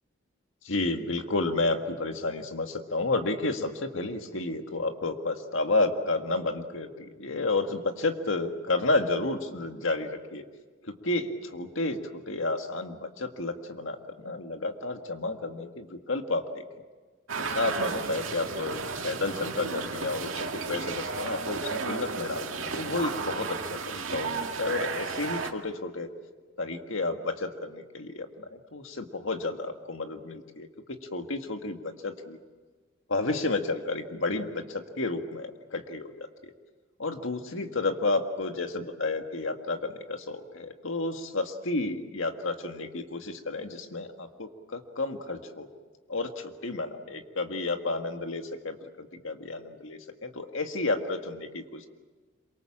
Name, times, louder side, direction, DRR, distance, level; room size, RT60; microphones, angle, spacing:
voice 1, 0.6-10.4 10.8-12.0 12.3-16.6 17.4-26.1 26.6-32.4 33.1-36.5 37.0-45.7 46.1-51.9, left 2 dB, 75° left, 5 dB, 1.9 m, -31 dB
sound 1, 17.3-25.5, right 4 dB, 85° right, 2.0 m, -33 dB
27.0 x 23.5 x 7.4 m, 1.4 s
head